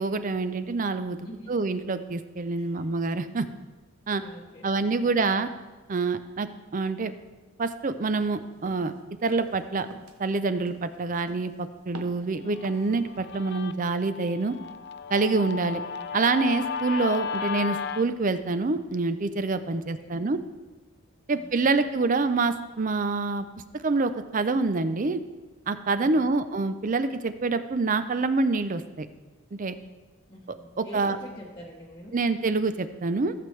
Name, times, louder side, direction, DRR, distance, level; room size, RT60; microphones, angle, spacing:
voice 1, 0.0-1.2 1.5-3.5 4.1-4.2 4.6-5.5 5.9-7.1 7.6-8.9 9.2-9.9 10.2-14.6 15.1-15.8 16.1-20.4 21.3-23.5 23.8-25.2 25.7-29.1 29.5-29.8 30.8-31.2 32.1-33.3, right 3 dB, 35° right, 11 dB, 0.5 m, -26 dB
voice 2, 1.2-1.6 2.5-2.9 4.1-5.3 19.7-20.3 21.3-21.8 26.0-26.2 30.3-32.2, equal, 20° left, -3 dB, 1.0 m, -46 dB
sound 1, 8.7-8.9 9.3-9.6 9.9-10.2 10.7-11.0 11.3-11.6 11.9-12.3 12.6-13.0, right 2 dB, 75° right, 0.9 m, -46 dB
Guitar, 12.5-18.0, left 6 dB, 50° left, 0.4 m, -34 dB
15.5 x 7.7 x 3.2 m, 1.2 s
head